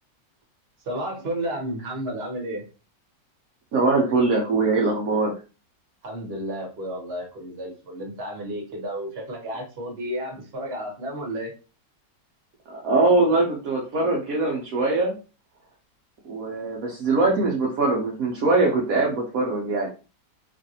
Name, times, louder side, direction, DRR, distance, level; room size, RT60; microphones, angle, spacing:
voice 1, 0.8-2.6 6.0-11.5, right 1 dB, 40° right, -1 dB, 1.1 m, -32 dB
voice 2, 3.7-5.3 12.7-15.2 16.3-19.9, right 3 dB, 60° right, -2 dB, 1.0 m, -22 dB
3.1 x 2.5 x 2.7 m, 0.33 s
omnidirectional pair, 2.0 m